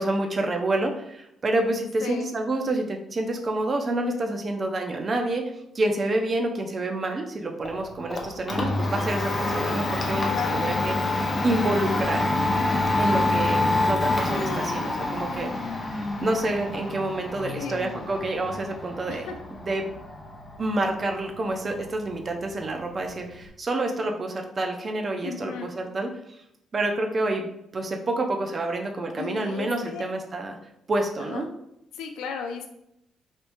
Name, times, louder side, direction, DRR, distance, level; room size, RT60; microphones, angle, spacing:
voice 1, 0.0-12.3 13.0-19.3 19.6-19.9 20.6-26.1 26.7-30.6 30.9-31.5, right 2 dB, 40° right, 3 dB, 0.6 m, -28 dB
voice 2, 2.0-2.3 10.3-10.8 17.6-18.0 19.1-19.3 25.2-25.7 29.2-30.1 31.2-31.5 31.9-32.7, left 6 dB, 90° left, 5 dB, 0.4 m, -35 dB
Domestic sounds home sounds, 7.6-23.5, left 2 dB, 35° left, 0.6 m, -27 dB
3.5 x 2.7 x 2.6 m, 0.80 s
cardioid pair, 90°, 0 cm